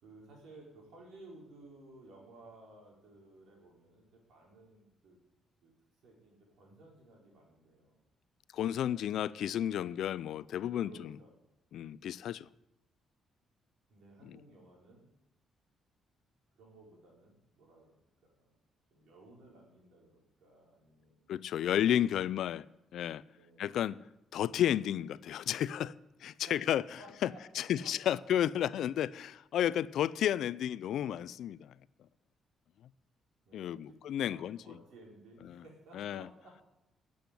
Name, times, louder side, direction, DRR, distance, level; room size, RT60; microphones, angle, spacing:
voice 1, 0.0-5.2 5.6-5.7 6.0-8.0 10.8-11.4 13.9-15.1 16.6-17.9 18.4-18.6 18.9-21.3 23.2-23.7 26.3-28.2 28.6-28.7 33.4-34.0 34.3-36.7, right 2 dB, 75° right, 4.8 m, -56 dB
voice 2, 8.5-11.2 11.7-12.5 14.2-14.4 21.3-22.6 22.9-23.2 23.6-24.0 24.3-25.9 26.2-26.8 27.2-27.3 27.6-31.7 33.5-34.6 35.5-35.6 35.9-36.3, left 11 dB, 75° left, 0.4 m, -32 dB
10.5 x 7.8 x 9.6 m
cardioid pair, 90°, 0 cm